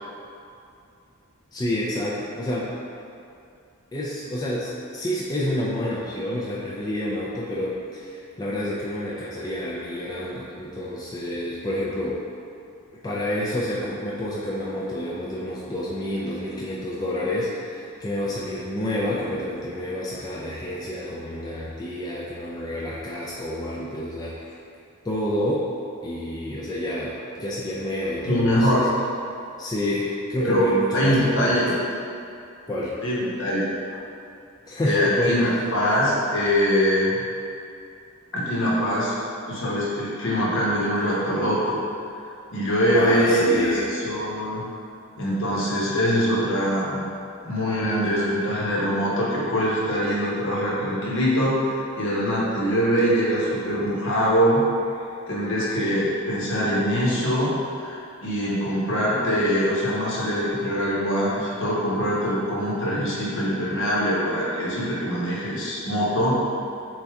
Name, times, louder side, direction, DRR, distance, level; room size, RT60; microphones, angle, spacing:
voice 1, 1.5-2.7 3.9-12.2 13.0-24.5 25.0-25.7 26.0-28.9 29.6-31.6 32.7-33.0 34.7-35.7 42.9-43.9, left 1 dB, 20° left, -6 dB, 0.4 m, -29 dB
voice 2, 28.3-28.8 30.4-30.6 30.9-31.7 33.0-33.6 34.8-37.3 38.3-39.1 39.5-41.8 42.5-44.6 45.2-47.0 47.4-54.6 55.3-66.4, equal, 60° left, -6 dB, 1.0 m, -23 dB
4.0 x 3.4 x 3.5 m, 2.5 s
head